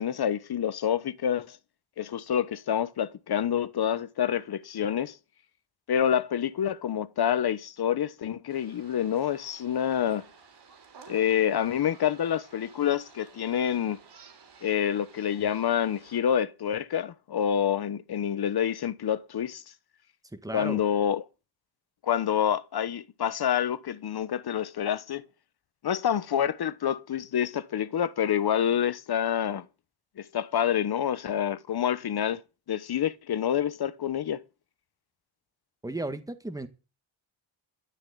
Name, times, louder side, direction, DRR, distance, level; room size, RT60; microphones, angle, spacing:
voice 1, 0.0-1.6 2.0-5.2 5.9-10.3 11.1-14.0 14.6-19.6 20.5-21.2 22.0-25.2 25.8-29.7 30.2-32.4 32.7-34.4, left 9 dB, 55° left, 1.0 m, -27 dB
sound 1, 8.5-16.2, right 5 dB, 60° right, 4.2 m, -54 dB
voice 2, 20.4-20.8 35.8-36.7, right 2 dB, 10° right, 1.8 m, -34 dB
12.5 x 7.1 x 8.5 m
cardioid pair, 110°, 46 cm